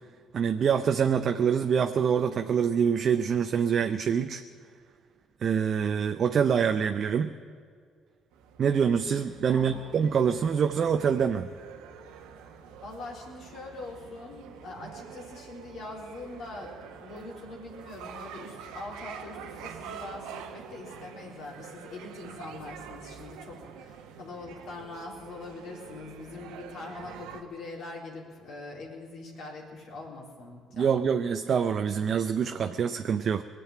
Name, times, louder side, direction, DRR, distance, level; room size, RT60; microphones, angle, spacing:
voice 1, 0.3-4.4 5.4-7.3 8.6-11.5 30.8-33.4, right 7 dB, 55° right, 7 dB, 0.6 m, -25 dB
sound 1, 8.3-27.4, right 7 dB, 80° right, 1.1 m, -46 dB
voice 2, 9.5-9.8 12.8-31.1, left 2 dB, 65° left, -2 dB, 3.9 m, -43 dB
20.0 x 7.8 x 9.0 m, 2.1 s
supercardioid pair, 65°, 0 cm